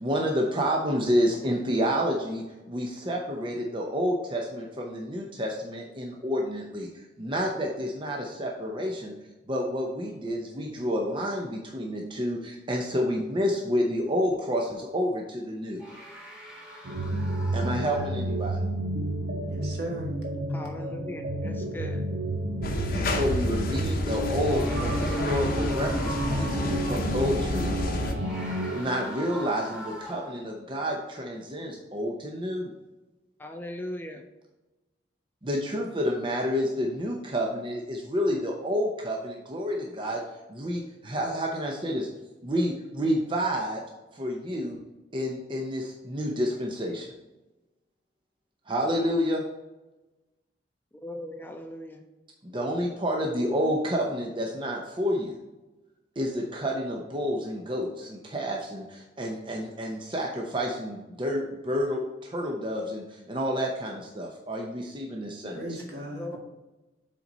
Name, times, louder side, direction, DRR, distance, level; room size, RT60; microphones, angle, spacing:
voice 1, 0.0-9.1 9.5-15.8 17.5-18.6 22.9-27.7 28.7-32.7 35.4-40.2 40.5-42.1 42.4-43.8 44.1-44.8 45.1-47.1 48.7-49.4 52.4-55.3 56.2-65.8, equal, 30° right, 0 dB, 0.7 m, -29 dB
sound 1, 15.8-18.6 22.8-22.9 24.2-26.9 28.0-30.5, equal, 5° right, 1.5 m, -43 dB
sound 2, 16.8-28.8, right 1 dB, 80° right, 1.0 m, -31 dB
voice 2, 19.5-20.2 65.5-66.4, right 1 dB, 60° right, -1 dB, 1.6 m, -36 dB
voice 3, 20.5-22.1 33.4-34.2 51.0-52.0 66.2-66.4, left 1 dB, 10° left, 4 dB, 0.5 m, -38 dB
sound 3, 22.6-28.1, left 1 dB, 55° left, 0.8 m, -30 dB
7.4 x 4.0 x 4.1 m, 1.1 s
head